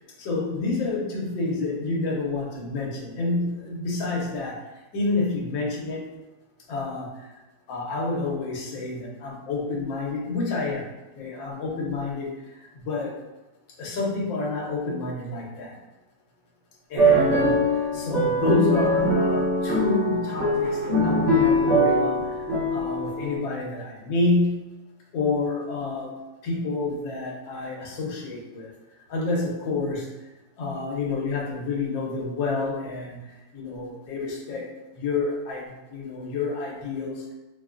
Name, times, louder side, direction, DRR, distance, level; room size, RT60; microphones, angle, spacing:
voice 1, 0.2-4.6 4.9-6.1 6.7-7.3 7.7-10.8 11.2-12.3 12.7-13.2 13.8-15.7 16.9-17.6 17.9-22.1 22.7-24.6 25.1-26.1 26.4-28.7 29.1-30.1 30.6-33.2 33.5-34.7 35.0-37.2, left 3 dB, 90° left, -3 dB, 1.6 m, -28 dB
sound 1, 17.0-23.3, equal, 70° right, 1.7 m, -22 dB
5.2 x 2.2 x 2.4 m, 1.1 s
omnidirectional pair, 2.0 m